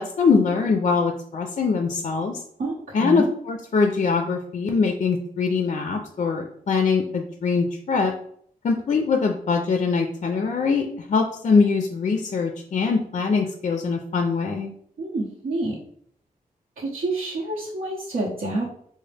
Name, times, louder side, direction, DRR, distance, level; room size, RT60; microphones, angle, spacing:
voice 1, 0.0-2.4 2.9-8.1 8.6-14.7, left 4 dB, 50° left, 4 dB, 0.4 m, -23 dB
voice 2, 2.6-3.3 15.0-15.8 16.8-18.7, right 2 dB, 75° right, -7 dB, 0.8 m, -28 dB
4.0 x 2.0 x 3.3 m, 0.64 s
cardioid pair, 90°, 15 cm